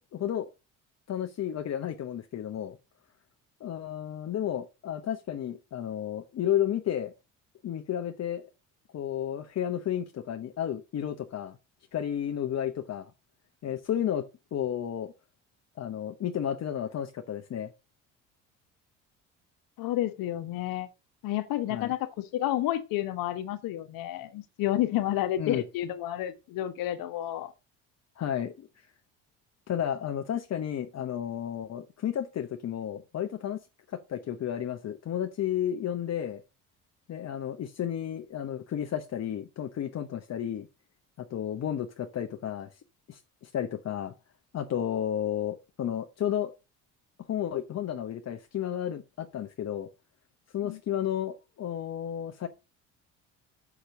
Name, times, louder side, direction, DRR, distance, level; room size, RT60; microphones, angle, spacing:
voice 1, 0.1-0.5 1.1-2.8 3.6-7.1 7.6-8.4 8.9-11.6 11.9-13.1 13.6-14.2 14.5-15.1 15.8-17.7 21.7-21.9 25.4-25.6 28.2-28.7 29.7-33.6 33.9-36.4 37.1-40.7 41.2-42.7 43.1-44.1 44.5-46.5 47.3-49.9 50.5-52.5, left 10 dB, 45° left, 1.0 m, -32 dB
voice 2, 19.8-20.9 21.2-27.5 50.6-50.8, left 13 dB, 70° left, 1.3 m, -30 dB
6.5 x 6.0 x 6.4 m
supercardioid pair, 70°, 36 cm